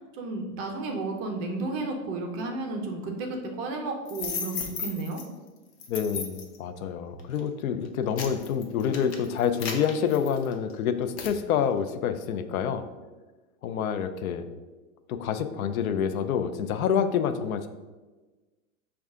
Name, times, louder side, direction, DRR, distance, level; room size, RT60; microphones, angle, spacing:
voice 1, 0.0-5.2, right 2 dB, 30° right, 3 dB, 0.5 m, -33 dB
sound 1, 4.1-5.2 5.8-6.6 7.2-7.4 7.8-10.7 11.2-11.4, left 5 dB, 50° left, 0.8 m, -35 dB
voice 2, 5.9-12.9 13.6-14.5 15.1-17.7, left 7 dB, 85° left, 10 dB, 0.6 m, -27 dB
6.3 x 2.4 x 3.6 m, 1.3 s
supercardioid pair, 140°, 41 cm